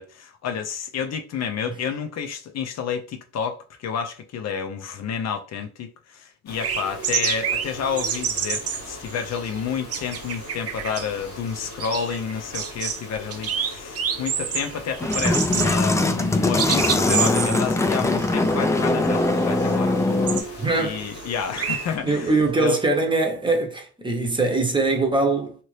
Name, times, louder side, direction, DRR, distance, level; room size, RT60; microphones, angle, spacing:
voice 1, 0.0-20.0 20.8-22.3 22.6-22.8, left 7 dB, 60° left, 0.6 m, -30 dB
sound 1, 6.5-22.0, left 2 dB, 90° left, 0.9 m, -41 dB
sound 2, 6.6-22.5, right 7 dB, 50° right, 0.6 m, -30 dB
sound 3, 15.0-20.4, left 2 dB, 10° left, 0.4 m, -21 dB
voice 2, 20.6-21.0 22.0-25.5, right 3 dB, 15° right, 0.8 m, -22 dB
2.8 x 2.5 x 3.2 m
cardioid pair, 90°, 30 cm